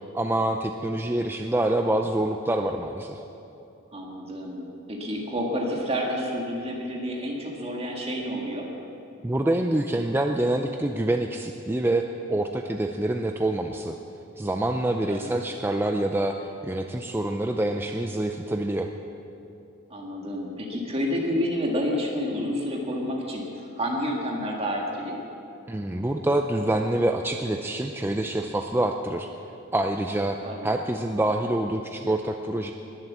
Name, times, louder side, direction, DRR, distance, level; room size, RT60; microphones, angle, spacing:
voice 1, 0.1-3.2 9.2-14.0 14.4-18.9 25.7-29.3 29.7-32.7, right 1 dB, 10° right, 4 dB, 0.4 m, -26 dB
voice 2, 3.9-8.7 15.1-15.3 19.9-25.2 30.4-30.7, equal, 30° right, -1 dB, 1.8 m, -29 dB
21.0 x 7.8 x 7.3 m, 2.8 s
head